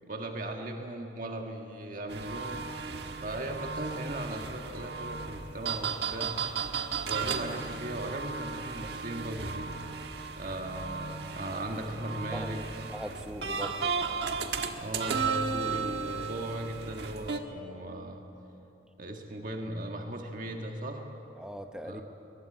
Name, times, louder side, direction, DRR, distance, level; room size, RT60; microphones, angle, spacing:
voice 1, 0.0-2.6 3.2-6.4 7.1-9.7 10.4-12.8 14.8-18.2 19.0-21.0 21.8-22.0, right 1 dB, 45° right, 2 dB, 1.7 m, -37 dB
sound 1, 2.1-17.4, right 5 dB, 70° right, 1.4 m, -35 dB
voice 2, 12.9-14.0 21.4-22.0, equal, 5° right, 6 dB, 0.9 m, -40 dB
22.0 x 21.0 x 9.1 m, 2.8 s
head